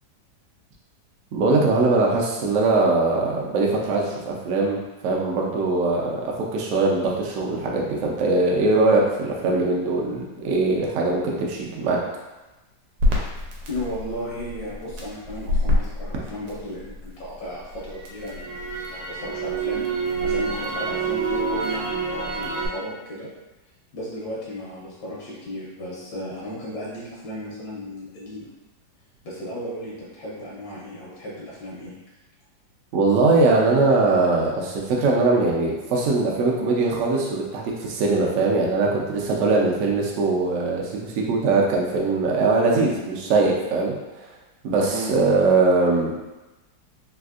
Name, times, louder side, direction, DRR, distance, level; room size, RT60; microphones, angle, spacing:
voice 1, 1.3-4.8 5.0-12.0 32.9-43.9 44.6-46.1, right 3 dB, 70° right, -2 dB, 0.7 m, -21 dB
Crackle, 13.0-17.1 17.5-22.7, right 1 dB, 85° right, 1.3 m, -26 dB
voice 2, 13.7-19.8 20.2-23.3 23.9-28.5 29.2-31.9 44.9-45.1, equal, 75° left, -6 dB, 1.3 m, -35 dB
3.4 x 2.4 x 2.4 m, 1.1 s
omnidirectional pair, 1.9 m